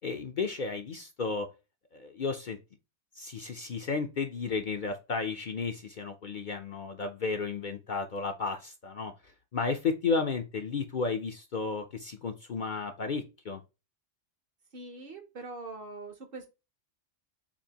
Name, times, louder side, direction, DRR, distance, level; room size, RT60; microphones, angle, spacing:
voice 1, 0.0-1.5 1.9-2.6 3.1-9.1 9.5-13.6, left 4 dB, 50° left, 0.7 m, -33 dB
voice 2, 14.7-16.5, right 3 dB, 50° right, 1.1 m, -43 dB
6.9 x 2.6 x 2.8 m
omnidirectional pair, 1.2 m